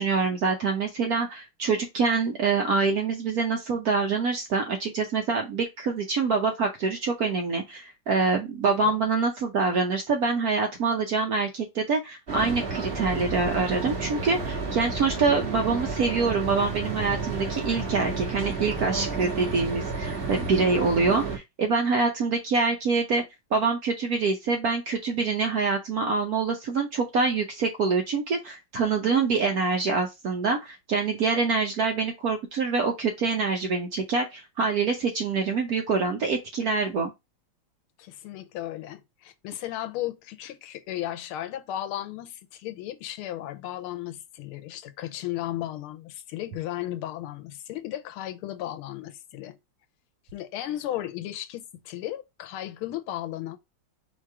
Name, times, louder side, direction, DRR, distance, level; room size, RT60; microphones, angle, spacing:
voice 1, 0.0-23.2 23.5-37.1, right 4 dB, 65° right, 0.9 m, -25 dB
sound 1, 12.3-21.4, right 4 dB, 30° right, 1.4 m, -31 dB
voice 2, 38.0-49.6 50.3-53.6, left 13 dB, 90° left, 1.5 m, -35 dB
4.6 x 2.4 x 4.6 m
omnidirectional pair, 2.3 m